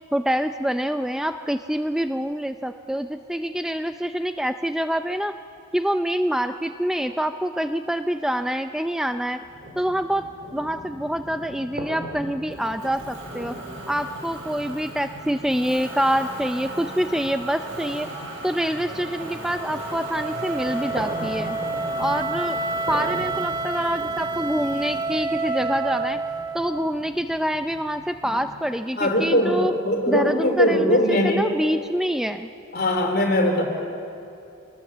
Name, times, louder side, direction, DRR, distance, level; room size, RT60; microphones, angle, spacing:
voice 1, 0.1-5.3 5.7-9.4 9.8-10.2 10.5-13.6 13.9-18.1 18.4-21.6 22.0-22.6 22.9-26.2 26.5-29.7 30.1-32.5, equal, 5° right, 7 dB, 0.5 m, -26 dB
sound 1, 9.4-28.6, right 1 dB, 45° right, 3.1 m, -40 dB
Motor vehicle (road), 12.5-25.0, right 2 dB, 75° right, 5.6 m, -38 dB
Wind instrument woodwind instrument, 19.0-27.0, right 3 dB, 25° right, 1.3 m, -29 dB
voice 2, 29.0-31.5 32.7-33.6, left 1 dB, 50° left, 2 dB, 3.8 m, -21 dB
24.5 x 20.0 x 7.3 m, 2.7 s
head